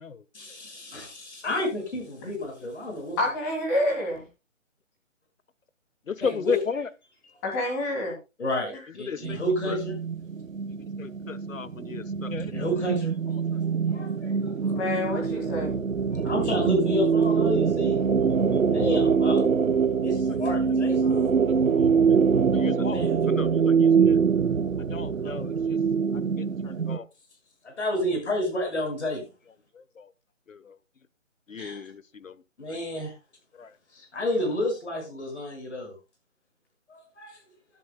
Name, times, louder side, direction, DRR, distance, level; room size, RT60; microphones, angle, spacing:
voice 1, 0.3-3.2 6.2-6.6 8.4-10.0 12.5-13.1 13.4-14.5 16.1-18.0 18.7-19.4 20.0-21.3 22.9-23.3 25.2-25.3 27.6-29.2 31.6-31.8 32.6-33.1 33.9-35.9 36.9-37.4, left 1 dB, 60° left, 1 dB, 6.4 m, -30 dB
voice 2, 3.2-4.2 7.4-8.2 14.6-15.8, left 1 dB, 10° left, 0 dB, 2.0 m, -28 dB
voice 3, 6.1-6.9 9.1-9.4 9.7-9.8 11.0-12.5 21.6-21.9 22.5-24.2 24.9-25.6 26.4-27.0 30.0-30.1 30.5-30.6 31.5-32.3 33.6-33.7, left 6 dB, 80° left, 16 dB, 1.3 m, -34 dB
sound 1, 9.2-27.0, right 6 dB, 85° right, 1.3 m, -24 dB
16.5 x 11.0 x 2.3 m, 0.27 s
hypercardioid pair, 170°, 38 cm